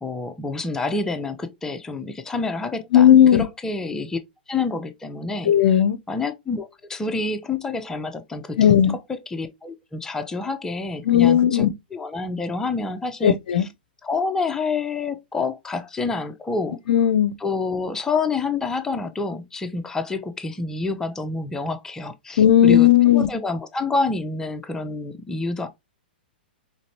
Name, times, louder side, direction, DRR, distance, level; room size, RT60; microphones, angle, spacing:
voice 1, 0.0-4.2 4.5-5.8 6.1-13.7 14.0-16.8 17.4-25.7, left 3 dB, 10° left, 0.6 m, -28 dB
voice 2, 2.9-3.4 5.5-6.0 8.6-8.9 11.1-11.7 13.2-13.6 16.9-17.3 22.4-23.3, left 10 dB, 55° left, 0.6 m, -15 dB
5.1 x 3.2 x 2.8 m
figure-of-eight pair, 105°, 5 cm